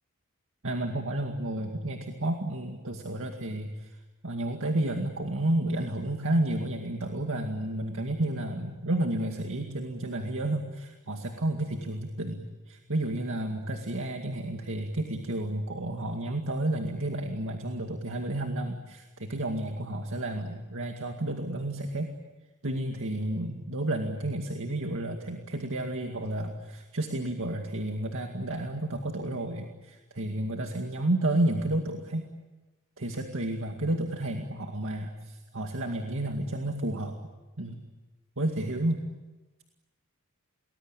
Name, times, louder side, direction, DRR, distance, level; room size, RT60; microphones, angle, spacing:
voice 1, 0.6-4.0 4.2-22.1 22.6-32.3 33.0-37.1 37.6-37.8 38.4-39.1, right 1 dB, 65° right, 3 dB, 2.2 m, -31 dB
29.5 x 20.5 x 9.0 m, 1.2 s
head